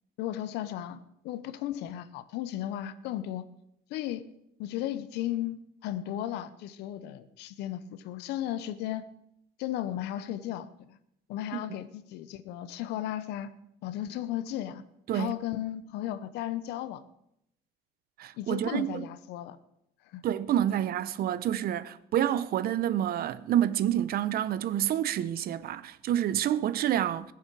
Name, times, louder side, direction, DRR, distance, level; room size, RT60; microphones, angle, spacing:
voice 1, 0.2-3.5 3.9-4.2 4.6-9.1 9.6-11.0 11.3-13.5 13.8-14.8 15.1-17.0 18.4-19.6 20.1-20.2, left 12 dB, 90° left, 0.9 m, -35 dB
voice 2, 18.2-19.1 20.2-27.3, right 11 dB, 65° right, 0.8 m, -28 dB
21.0 x 7.3 x 4.8 m
cardioid pair, 110°, 17 cm